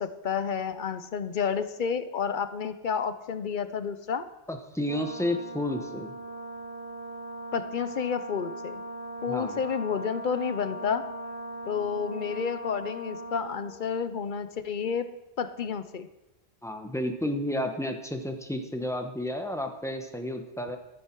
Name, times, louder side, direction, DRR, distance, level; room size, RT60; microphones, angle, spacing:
voice 1, 0.0-4.3 7.5-8.8 9.2-11.1 11.7-16.1, left 6 dB, 55° left, 12 dB, 0.7 m, -30 dB
voice 2, 4.5-6.1 9.3-9.6 16.6-20.8, left 1 dB, 5° left, 5 dB, 1.0 m, -31 dB
Brass instrument, 4.8-13.7, right 1 dB, 35° right, 2.7 m, -39 dB
13.0 x 10.0 x 4.6 m, 0.98 s
omnidirectional pair, 1.1 m